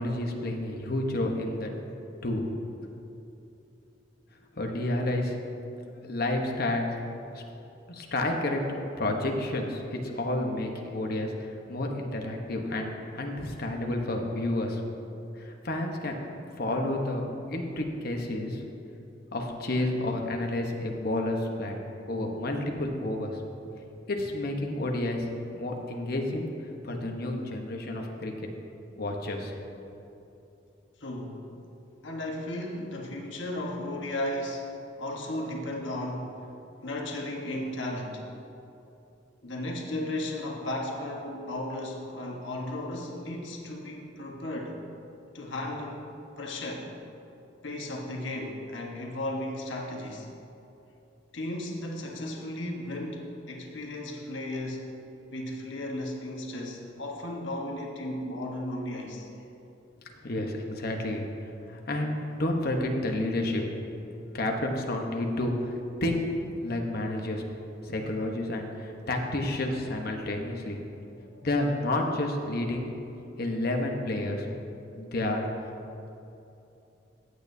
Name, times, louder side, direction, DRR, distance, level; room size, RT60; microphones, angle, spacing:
voice 1, 0.0-1.7 2.2-2.4 4.5-5.3 5.9-6.8 7.3-7.4 7.9-8.6 9.0-12.9 13.1-14.8 15.4-16.1 16.6-18.6 19.3-21.8 22.1-23.4 24.1-25.2 25.5-26.5 26.8-28.5 29.0-29.5 60.2-61.3 61.7-63.6 64.3-65.7 66.0-66.2 66.6-67.4 67.8-70.8 71.3-72.9 73.4-74.4 74.9-75.4, left 1 dB, 55° left, 2 dB, 1.0 m, -30 dB
voice 2, 31.0-31.5 32.0-34.7 35.0-36.4 36.8-38.3 39.4-44.8 45.3-46.1 46.4-46.9 47.6-50.3 51.3-54.9 55.3-59.3, left 1 dB, 80° left, 0 dB, 1.3 m, -35 dB
15.5 x 8.4 x 2.7 m, 2.9 s
head